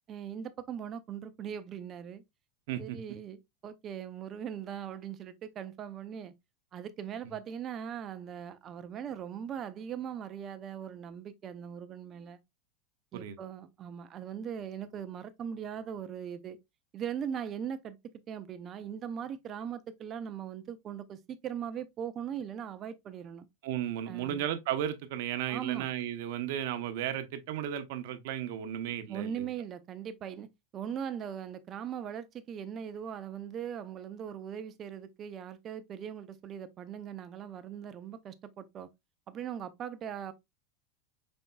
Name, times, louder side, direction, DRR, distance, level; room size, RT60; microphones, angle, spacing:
voice 1, 0.1-2.2 2.8-6.3 6.7-12.4 13.1-16.6 16.9-18.0 18.3-23.5 24.1-24.4 25.5-25.9 29.1-30.5 30.7-38.9 39.3-40.3, right 8 dB, 30° right, 0.5 m, -40 dB
voice 2, 2.7-3.0 7.2-7.3 13.1-13.4 23.6-29.5, right 11 dB, 65° right, 0.7 m, -34 dB
5.3 x 3.4 x 2.3 m
supercardioid pair, 135°, 0 cm